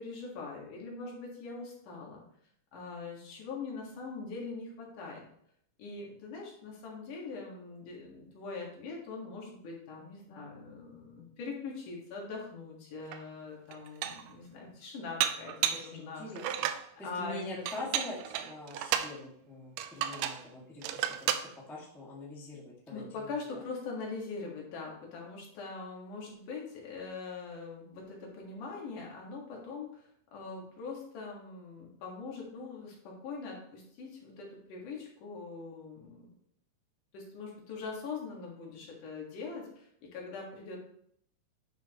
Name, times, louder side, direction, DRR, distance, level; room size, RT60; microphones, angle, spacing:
voice 1, 0.0-2.2 2.7-5.2 5.8-16.3 17.0-17.7 22.9-36.3 37.1-40.8, left 4 dB, 65° left, -2 dB, 3.1 m, -42 dB
Dishes pots and pans, 13.1-13.2 13.7-14.3 15.2-15.9 16.4-16.9 17.7-19.2 19.8-20.4 20.8-21.5, right 10 dB, 80° right, 2.1 m, -33 dB
voice 2, 15.7-16.7 17.0-21.4 21.7-23.6, left 2 dB, ahead, -5 dB, 0.5 m, -44 dB
10.0 x 5.7 x 3.0 m, 0.69 s
omnidirectional pair, 4.0 m